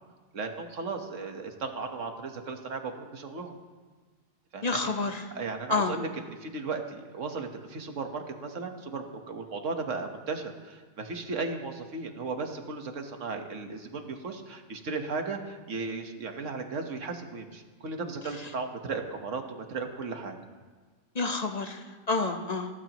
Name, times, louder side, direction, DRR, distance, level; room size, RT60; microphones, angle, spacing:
voice 1, 0.3-3.5 4.5-4.9 5.3-20.4, right 4 dB, 75° right, 4 dB, 1.7 m, -36 dB
voice 2, 4.6-5.2 5.7-5.9 21.1-22.7, left 3 dB, 35° left, 5 dB, 1.0 m, -29 dB
28.5 x 14.0 x 3.1 m, 1.4 s
omnidirectional pair, 1.3 m